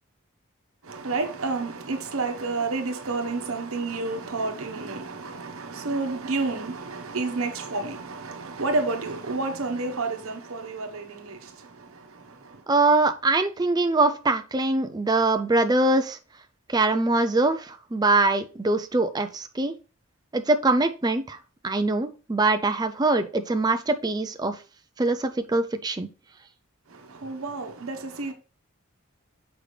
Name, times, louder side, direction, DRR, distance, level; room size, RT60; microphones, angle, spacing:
voice 1, 0.8-12.6 27.1-28.3, right 3 dB, 75° right, 1.0 m, -30 dB
voice 2, 12.7-16.2 16.7-19.7 20.3-21.4 21.6-24.6 25.0-26.1, right 2 dB, 20° right, 0.4 m, -23 dB
6.7 x 5.0 x 3.2 m
head